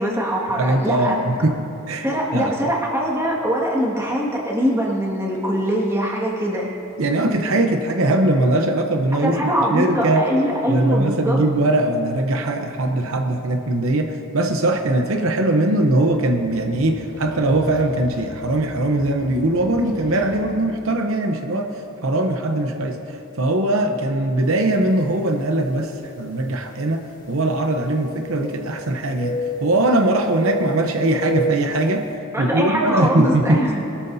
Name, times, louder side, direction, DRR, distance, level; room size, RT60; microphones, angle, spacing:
voice 1, 0.0-1.2 2.0-6.7 9.2-11.4 32.3-33.8, equal, 10° right, -4 dB, 1.8 m, -22 dB
voice 2, 0.6-2.6 7.0-10.2 10.7-32.0 32.4-33.6, right 2 dB, 70° right, 4 dB, 0.8 m, -21 dB
sound 1, 15.6-20.4, equal, 35° right, 2.0 m, -41 dB
sound 2, 24.7-24.9 25.7-25.8 27.6-28.9 29.2-30.0 30.4-31.8, right 1 dB, 35° left, 1.9 m, -29 dB
21.5 x 13.5 x 2.7 m, 2.9 s
head